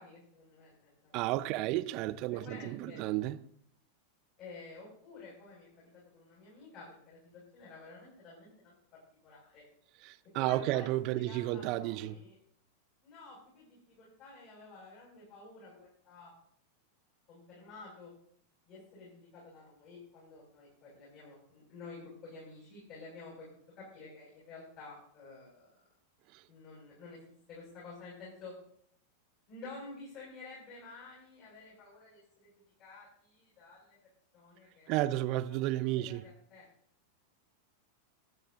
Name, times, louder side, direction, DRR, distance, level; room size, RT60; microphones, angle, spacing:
voice 1, 0.0-1.2 2.3-3.0 4.4-8.7 9.2-9.6 10.4-12.3 13.0-16.3 17.3-18.1 18.7-23.5 23.7-25.8 26.5-27.2 27.5-28.5 29.5-32.5 32.8-34.0 34.3-35.1 35.5-36.7, left 3 dB, 40° left, 6.7 m, -51 dB
voice 2, 1.1-3.4 10.0-12.2 26.3-26.4 34.9-36.2, right 15 dB, 40° right, 0.6 m, -32 dB
24.0 x 9.2 x 2.8 m
figure-of-eight pair, 90°, 0 cm